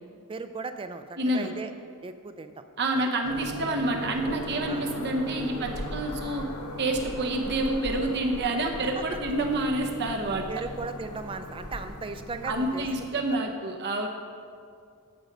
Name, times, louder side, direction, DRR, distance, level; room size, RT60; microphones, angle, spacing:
voice 1, 0.3-1.7 2.0-2.5 2.9-3.0 4.7-4.8 8.8-9.0 10.5-13.2, right 3 dB, 25° right, 9 dB, 0.4 m, -37 dB
voice 2, 1.2-1.5 2.8-6.4 6.8-10.6 12.4-14.1, right 2 dB, 50° right, 2 dB, 0.8 m, -28 dB
sound 1, 3.2-13.1, equal, 80° left, 1.1 m, -38 dB
8.9 x 7.9 x 5.3 m, 2.2 s
head